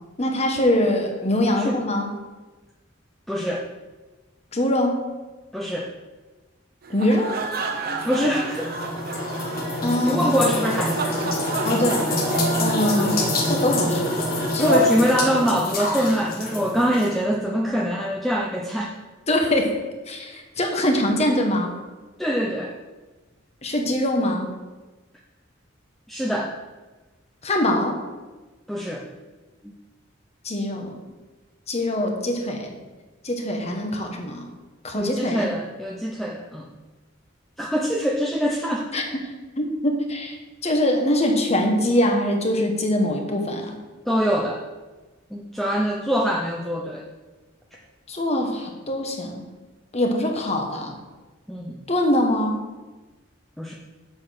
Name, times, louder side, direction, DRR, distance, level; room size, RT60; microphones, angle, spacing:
voice 1, 0.2-2.1 4.5-5.0 6.9-7.3 9.8-10.2 11.6-12.1 12.6-14.2 14.5-14.8 19.3-19.7 20.1-21.7 23.6-24.5 27.4-28.0 30.4-31.0 31.7-32.7 33.2-34.5 34.8-35.5 38.9-39.0 39.6-40.4 40.6-43.8 48.1-49.4 49.9-51.0 51.9-52.6, left 1 dB, 35° left, 3 dB, 1.3 m, -23 dB
voice 2, 3.3-3.6 5.5-5.9 8.0-8.8 9.7-11.3 14.6-18.9 22.2-22.7 26.1-26.5 28.7-29.1 29.6-29.7 35.0-36.7 37.6-38.9 44.1-44.6 45.3-47.0 51.5-51.8 53.6-53.7, equal, ahead, -2 dB, 0.6 m, -24 dB
sound 1, 6.8-15.9, right 3 dB, 50° right, 1.0 m, -32 dB
sound 2, 7.5-17.1, left 1 dB, 50° left, 1.5 m, -27 dB
7.8 x 6.8 x 5.8 m, 1.2 s
head